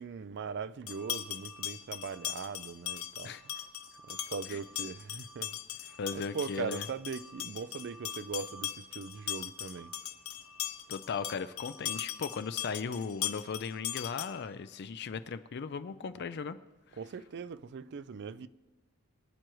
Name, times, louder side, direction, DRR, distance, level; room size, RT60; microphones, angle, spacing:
voice 1, 0.0-3.3 4.1-5.5 6.1-9.9 17.0-18.5, right 5 dB, 50° right, 0.4 m, -40 dB
sound 1, 0.9-14.5, left 11 dB, 75° left, 0.8 m, -40 dB
voice 2, 6.0-6.9 10.9-16.6, left 5 dB, 50° left, 0.4 m, -37 dB
23.0 x 9.0 x 3.1 m
head